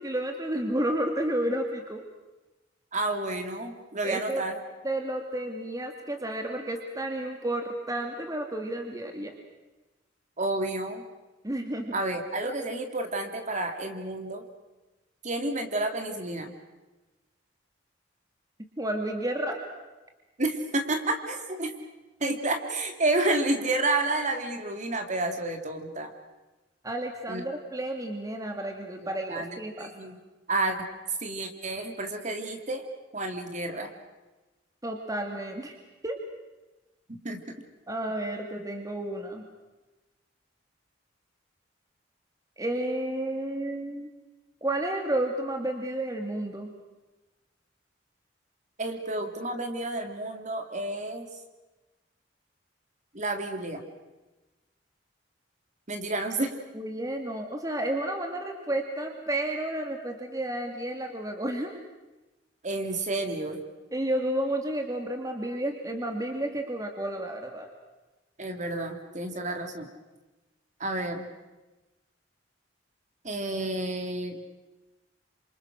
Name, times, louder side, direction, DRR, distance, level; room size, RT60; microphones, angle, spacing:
voice 1, 0.0-2.0 4.0-4.4 4.8-9.3 11.4-12.0 18.8-19.6 26.8-29.9 34.8-35.7 36.0-36.2 37.9-39.4 42.6-44.1 44.6-46.7 56.7-61.8 63.9-67.7, right 1 dB, 20° right, 3 dB, 2.4 m, -31 dB
voice 2, 2.9-4.5 10.4-11.0 11.9-14.4 15.2-16.5 20.4-21.7 22.2-26.1 27.3-27.5 29.0-30.2 30.5-30.9 31.2-32.8 33.1-33.9 37.1-37.4 48.8-51.3 53.1-53.8 55.9-56.5 62.6-63.6 68.4-69.9 70.8-71.3 73.2-74.4, right 2 dB, 40° right, 5 dB, 3.1 m, -30 dB
29.0 x 27.0 x 6.4 m, 1.1 s
head